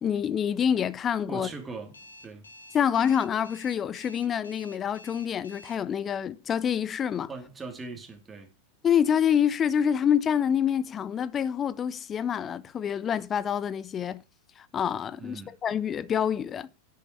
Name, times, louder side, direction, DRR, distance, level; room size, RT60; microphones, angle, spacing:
voice 1, 0.0-1.5 2.7-7.3 8.8-14.2 14.6-16.7, left 8 dB, 25° left, 0.7 m, -27 dB
voice 2, 1.3-2.5 7.3-8.5 15.2-15.5, right 3 dB, 15° right, 2.8 m, -40 dB
Alarm, 1.9-5.8, left 1 dB, 75° left, 2.9 m, -49 dB
10.5 x 8.3 x 4.5 m
figure-of-eight pair, 90°, 0 cm